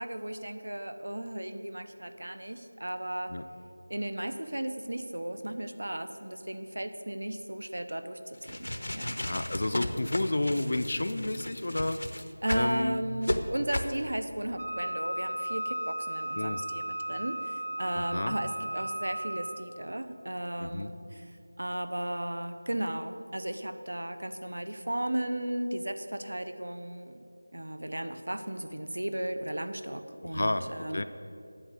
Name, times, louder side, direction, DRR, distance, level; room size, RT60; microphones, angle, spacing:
voice 1, 0.0-3.3 3.9-9.2 12.4-21.3 21.6-27.2 27.5-31.0, right 1 dB, 85° right, 9 dB, 0.8 m, -35 dB
sound 1, 8.3-12.7 13.2-13.4 13.7-14.0, left 1 dB, 80° left, 0.8 m, -34 dB
voice 2, 9.2-12.0 12.5-13.1 16.3-16.6 18.0-18.4 20.6-20.9 30.2-31.0, left 2 dB, 35° left, 10 dB, 0.4 m, -31 dB
Wind instrument woodwind instrument, 14.6-19.8, right 1 dB, 25° right, 0.5 m, -35 dB
8.7 x 6.7 x 7.8 m, 2.7 s
figure-of-eight pair, 180°, 0 cm